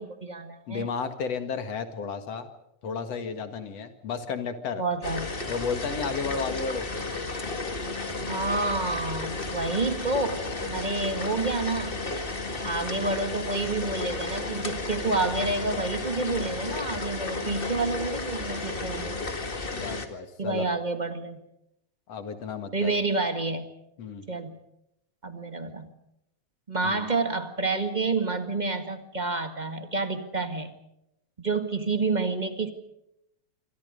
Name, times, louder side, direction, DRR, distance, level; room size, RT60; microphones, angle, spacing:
voice 1, 0.0-0.9 4.8-5.3 8.3-12.0 12.6-19.3 20.4-21.4 22.7-23.7 24.3-24.6 25.2-25.9 26.7-30.7 31.4-32.7, right 3 dB, 20° right, 7 dB, 1.2 m, -29 dB
voice 2, 0.7-2.5 2.8-4.8 5.5-6.9 12.5-12.8 19.7-20.7 22.1-23.0 24.0-24.2 26.8-27.0, left 5 dB, 55° left, 8 dB, 2.9 m, -33 dB
sound 1, 5.0-20.1, left 3 dB, 25° left, 1.5 m, -33 dB
27.0 x 25.0 x 5.3 m, 0.81 s
omnidirectional pair, 3.6 m